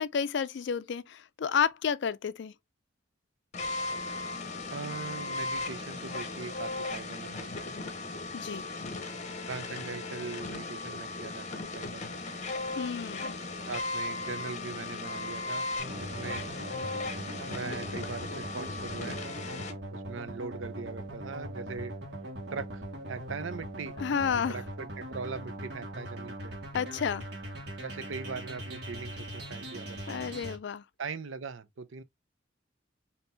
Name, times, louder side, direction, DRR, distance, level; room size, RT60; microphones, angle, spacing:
voice 1, 0.0-2.5 8.3-8.6 12.8-13.4 24.0-24.6 26.7-27.3 30.1-30.8, left 7 dB, 60° left, 0.4 m, -31 dB
sound 1, 3.5-19.7, left 3 dB, 35° left, 0.8 m, -37 dB
voice 2, 4.7-7.8 9.5-12.2 13.7-15.6 15.9-16.4 17.5-19.2 19.9-21.9 22.5-23.9 24.3-26.5 27.8-30.2 31.0-32.0, right 4 dB, 80° right, 0.6 m, -40 dB
sound 2, 15.8-30.6, right 1 dB, 60° right, 1.7 m, -41 dB
5.3 x 2.8 x 2.7 m
head